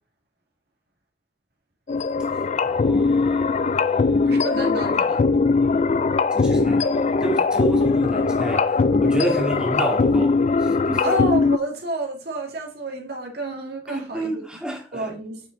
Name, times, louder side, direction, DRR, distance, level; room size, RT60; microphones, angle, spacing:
sound 1, 1.9-11.6, left 4 dB, 40° left, 0.4 m, -20 dB
voice 1, 2.6-4.3 6.3-11.1 13.9-15.1, right 1 dB, 5° right, 2.1 m, -30 dB
voice 2, 4.2-5.3 11.0-14.4 14.9-15.4, right 1 dB, 55° right, 1.9 m, -29 dB
8.1 x 5.7 x 3.8 m
head